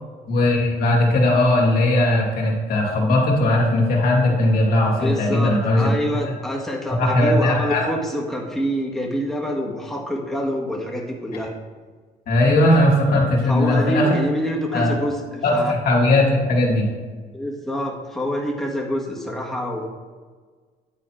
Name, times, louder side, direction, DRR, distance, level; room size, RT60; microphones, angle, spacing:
voice 1, 0.3-5.9 7.0-7.8 12.3-14.2 14.7-14.9 15.4-16.9, left 1 dB, 60° left, -1 dB, 2.5 m, -18 dB
voice 2, 5.0-11.5 13.4-15.7 17.3-19.9, equal, ahead, -2 dB, 1.7 m, -26 dB
10.0 x 4.2 x 4.6 m, 1.5 s
cardioid pair, 110°, 17 cm